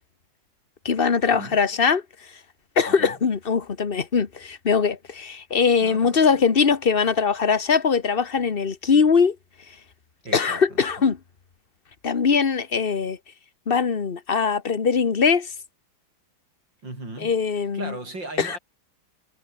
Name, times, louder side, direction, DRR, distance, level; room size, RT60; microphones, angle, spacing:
voice 1, 0.8-2.0 2.8-9.3 10.3-11.2 12.0-13.2 13.7-15.5 17.2-17.9 18.4-18.6, left 5 dB, 35° left, 1.2 m, -21 dB
voice 2, 5.8-6.4 10.2-11.1 16.8-18.6, right 2 dB, 60° right, 8.6 m, -38 dB
omnidirectional pair, 2.2 m